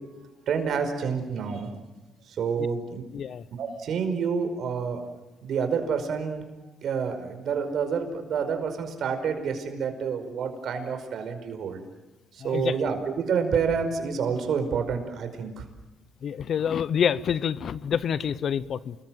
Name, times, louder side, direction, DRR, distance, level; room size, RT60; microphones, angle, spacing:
voice 1, 0.5-1.7 2.2-3.0 3.6-5.0 5.4-6.4 6.8-11.8 12.3-15.6, right 6 dB, 65° right, 7 dB, 5.1 m, -28 dB
voice 2, 3.1-3.4 12.4-12.8 16.2-19.0, left 8 dB, 60° left, 17 dB, 0.9 m, -27 dB
28.5 x 21.5 x 7.8 m, 1.1 s
cardioid pair, 90°, 0 cm